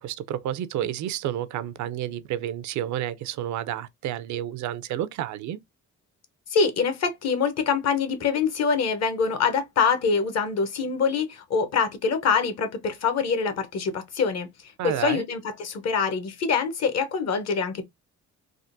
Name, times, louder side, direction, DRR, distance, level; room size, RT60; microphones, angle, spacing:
voice 1, 0.0-5.6 14.8-15.3, right 11 dB, 70° right, 0.4 m, -30 dB
voice 2, 6.5-14.5 14.8-17.8, left 5 dB, 60° left, 0.8 m, -25 dB
3.5 x 2.1 x 2.5 m
cardioid pair, 90°, 30 cm